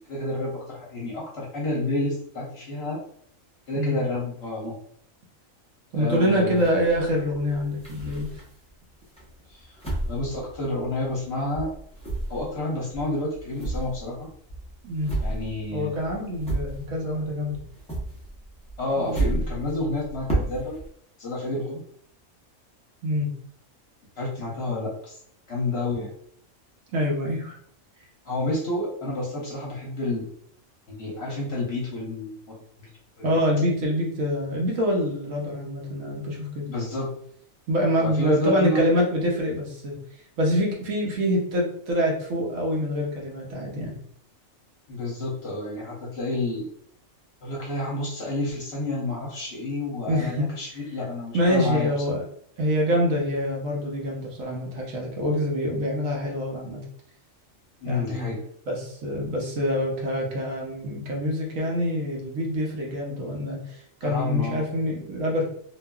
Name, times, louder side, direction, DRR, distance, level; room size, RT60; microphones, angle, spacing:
voice 1, 0.0-3.0 3.7-4.7 5.9-6.7 9.5-11.7 12.3-14.3 15.2-16.0 18.8-20.8 21.2-21.8 24.2-25.2 25.5-26.1 28.2-30.3 30.9-32.9 33.2-33.4 36.7-37.1 38.0-38.8 44.9-46.7 47.4-51.9 57.8-58.4 64.0-64.6, left 2 dB, 55° left, -3 dB, 0.9 m, -30 dB
voice 2, 5.9-8.3 14.8-15.2 15.7-17.6 19.0-19.4 23.0-23.3 26.9-27.6 33.2-36.7 37.7-39.9 40.4-44.0 50.1-50.5 51.3-52.2 52.6-56.8 57.9-58.3 58.7-65.5, equal, 70° right, -1 dB, 1.1 m, -25 dB
sound 1, 6.6-8.7 9.2-11.3 11.5-17.2 17.5-20.9, right 2 dB, 10° left, 0.4 m, -32 dB
2.9 x 2.4 x 2.2 m, 0.63 s
omnidirectional pair, 1.5 m